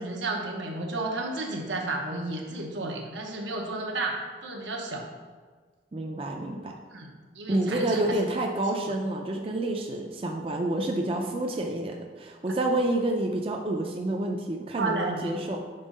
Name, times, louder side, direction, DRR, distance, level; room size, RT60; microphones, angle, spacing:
voice 1, 0.0-5.1 6.9-8.3 14.8-15.4, right 2 dB, 85° right, 1 dB, 0.9 m, -32 dB
voice 2, 5.9-6.7 7.5-15.6, right 1 dB, 30° right, 2 dB, 0.4 m, -28 dB
5.4 x 3.6 x 5.3 m, 1.5 s
head